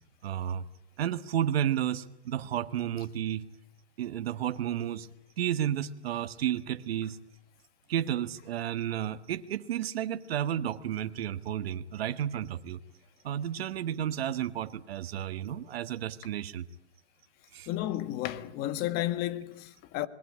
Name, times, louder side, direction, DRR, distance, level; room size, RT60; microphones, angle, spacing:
voice 1, 0.2-0.6 1.0-3.4 4.0-5.1 5.4-7.2 7.9-12.8 13.2-16.6 17.5-17.7, right 10 dB, 60° right, 1.6 m, -32 dB
voice 2, 17.7-20.1, left 14 dB, 30° left, 1.5 m, -32 dB
26.0 x 21.0 x 9.8 m
hypercardioid pair, 140°, 34 cm